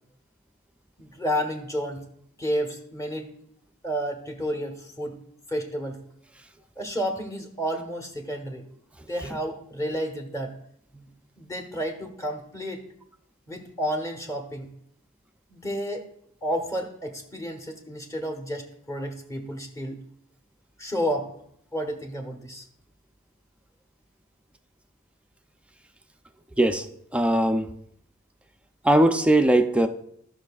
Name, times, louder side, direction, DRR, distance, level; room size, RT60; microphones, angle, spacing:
voice 1, 1.0-2.0 2.4-3.3 3.8-5.2 5.5-6.0 6.8-8.6 9.1-10.5 10.9-11.1 11.4-12.8 13.5-14.7 15.5-16.1 16.4-20.0 20.8-21.3 21.7-22.6, equal, 15° left, 4 dB, 1.2 m, -31 dB
voice 2, 27.1-27.7 28.8-29.9, right 1 dB, 5° right, 7 dB, 0.5 m, -20 dB
15.5 x 5.9 x 2.4 m, 0.70 s
head